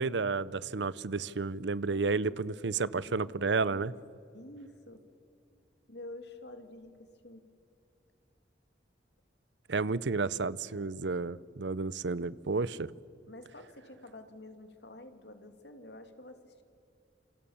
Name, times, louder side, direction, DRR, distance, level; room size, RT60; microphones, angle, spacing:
voice 1, 0.0-3.9 9.7-12.9, right 4 dB, 75° right, 19 dB, 0.7 m, -31 dB
voice 2, 1.8-2.4 2.6-3.9 4.3-5.0 5.9-7.4 10.7-11.1 13.3-16.6, left 1 dB, 65° left, 7 dB, 2.5 m, -50 dB
28.0 x 27.5 x 7.2 m, 2.5 s
head